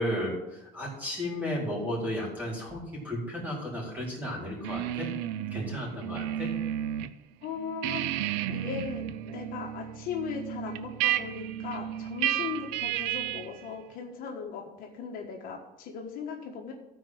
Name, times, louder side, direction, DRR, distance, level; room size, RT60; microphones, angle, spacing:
voice 1, 0.0-5.1 5.5-6.5, left 1 dB, 10° right, -5 dB, 4.3 m, -33 dB
sound 1, 4.6-7.1 7.4-13.6, right 12 dB, 80° right, 0.5 m, -32 dB
voice 2, 7.4-16.7, left 6 dB, 60° left, 1 dB, 1.4 m, -38 dB
14.0 x 4.7 x 6.3 m, 0.93 s
cardioid pair, 140°, 17 cm